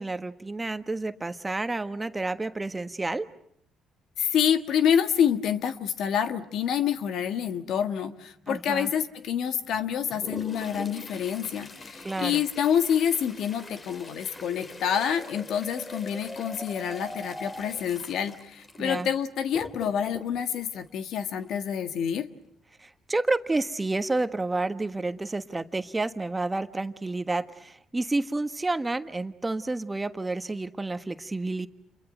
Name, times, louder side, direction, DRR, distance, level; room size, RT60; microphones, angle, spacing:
voice 1, 0.0-3.3 8.5-8.9 12.0-12.4 18.8-19.1 22.8-31.7, right 2 dB, 20° right, 9 dB, 1.4 m, -30 dB
voice 2, 4.2-22.3, left 8 dB, 75° left, 9 dB, 1.6 m, -27 dB
sound 1, 7.6-18.1, left 1 dB, 10° left, 4.7 m, -45 dB
Toilet flush, 9.7-21.7 23.6-23.7 24.0-24.1 24.9-25.0 25.6-25.9 26.3-26.5, left 2 dB, 35° left, 3.0 m, -45 dB
29.0 x 23.0 x 8.0 m, 0.70 s
supercardioid pair, 75°, 0 cm